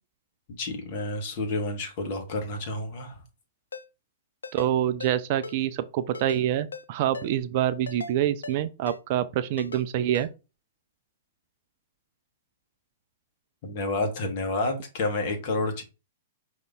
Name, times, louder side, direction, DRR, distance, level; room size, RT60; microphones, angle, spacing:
voice 1, 0.6-3.2 13.6-15.8, left 2 dB, 45° left, 1.4 m, -29 dB
Ringtone, 3.7-3.8 4.4-4.7 5.0-5.1 5.4-5.6 6.1-6.4 6.7-6.8 7.1-7.3 7.9-8.1 8.4-8.6 8.9-9.0 9.6-9.8 10.1-10.3, left 4 dB, 75° left, 0.5 m, -38 dB
voice 2, 4.5-10.3, right 11 dB, 45° right, 0.4 m, -26 dB
5.2 x 2.8 x 3.5 m
figure-of-eight pair, 105°, 0 cm